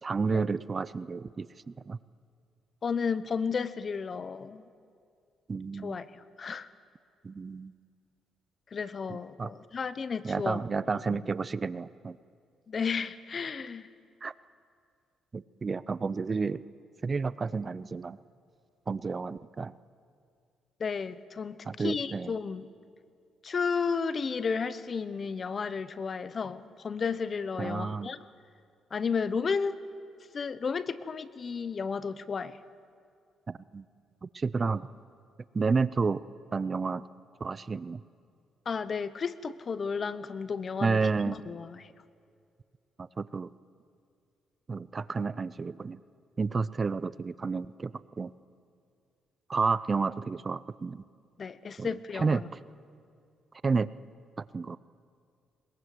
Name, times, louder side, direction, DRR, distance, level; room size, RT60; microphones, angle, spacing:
voice 1, 0.0-2.0 5.5-6.0 7.2-7.7 9.1-9.5 10.2-12.2 14.2-14.3 15.3-16.6 17.0-18.2 18.9-19.7 21.6-22.3 27.6-28.1 33.5-33.8 34.2-34.9 35.5-36.2 36.5-37.0 37.4-38.0 40.8-41.3 43.0-43.5 44.7-46.0 46.4-48.3 49.5-51.0 51.8-52.4 53.6-53.9 54.4-54.8, right 4 dB, 35° right, 17 dB, 0.5 m, -31 dB
voice 2, 2.8-4.6 5.8-6.7 8.7-10.6 10.9-11.2 12.7-13.9 20.8-22.7 23.4-28.2 28.9-29.8 30.3-32.6 38.7-41.0 41.3-41.9 51.4-52.5, left 5 dB, 45° left, 15 dB, 0.9 m, -33 dB
21.5 x 21.0 x 7.9 m, 2.3 s
cardioid pair, 90°, 0 cm